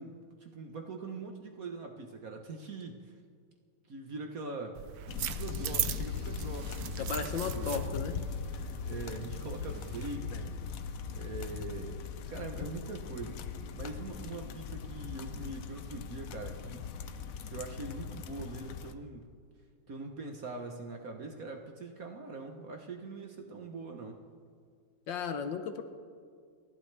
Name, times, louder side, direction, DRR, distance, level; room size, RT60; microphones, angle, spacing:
voice 1, 0.0-3.2 3.9-4.8 5.2-7.8 8.8-10.6 11.1-13.5 13.7-16.9 17.5-19.3 19.9-24.2, right 3 dB, 50° right, 3 dB, 1.2 m, -43 dB
sound 1, 4.8-10.2, right 11 dB, 85° right, 0.8 m, -39 dB
sound 2, 5.1-18.9, left 6 dB, 85° left, 0.7 m, -40 dB
voice 2, 7.0-8.2 8.5-8.7 25.1-25.8, left 6 dB, 70° left, 8 dB, 1.4 m, -35 dB
29.5 x 11.5 x 3.3 m, 2.1 s
omnidirectional pair, 2.3 m